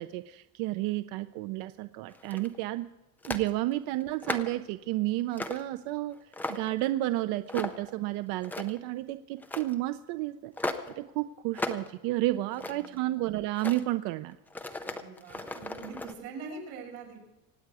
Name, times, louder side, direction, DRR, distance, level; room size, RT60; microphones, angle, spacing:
voice 1, 0.0-2.9 3.3-6.2 6.5-10.5 11.0-14.3, right 16 dB, 55° right, 12 dB, 0.6 m, -31 dB
sound 1, 2.1-2.6 3.2-3.5 4.0-4.6 5.3-5.7 6.1-6.8 7.5-7.9 8.3-8.9 9.4-9.7 10.6-10.9 11.5-11.9 12.3-13.0 13.5-13.8 14.5-16.1, left 2 dB, 5° left, 0.5 m, -36 dB
voice 2, 12.6-13.1 14.8-17.2, right 4 dB, 75° right, -1 dB, 6.9 m, -44 dB
25.0 x 9.5 x 4.8 m, 1.0 s
cardioid pair, 165°, 44 cm